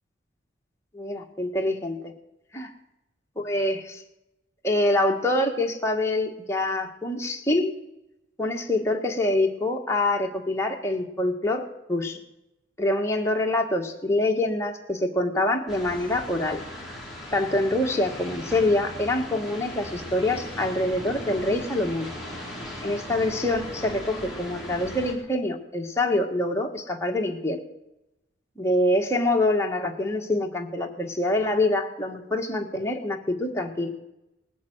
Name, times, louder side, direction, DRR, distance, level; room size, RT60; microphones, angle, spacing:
voice 1, 0.9-2.1 2.5-2.7 3.4-4.0 4.6-7.7 8.4-12.2 12.8-16.6 17.3-22.1 22.8-27.6 28.6-33.9, left 1 dB, 15° left, 1 dB, 1.6 m, -25 dB
sound 1, 15.7-25.1, left 1 dB, ahead, 3.6 m, -38 dB
19.0 x 8.5 x 8.0 m, 0.91 s
head